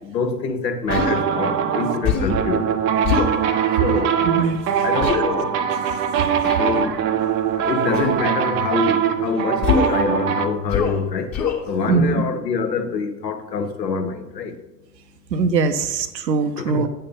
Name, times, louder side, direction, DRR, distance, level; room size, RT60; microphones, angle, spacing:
voice 1, 0.0-2.7 3.7-4.2 4.8-5.6 6.5-7.0 7.6-11.3 11.7-14.6 16.6-16.9, left 4 dB, 80° left, 0.9 m, -25 dB
Human voice, 0.9-1.2 2.0-2.4 3.0-3.3 5.0-5.2 6.4-6.7 7.9-8.2 9.6-10.0 10.7-11.0 11.3-11.6, left 6 dB, 35° left, 1.4 m, -22 dB
sound 1, 0.9-10.5, right 8 dB, 25° right, 0.5 m, -22 dB
voice 2, 4.3-4.6 5.1-5.2 11.9-12.2 15.3-16.9, right 5 dB, 85° right, 0.6 m, -21 dB
8.7 x 3.3 x 5.3 m
figure-of-eight pair, 85°, 49 cm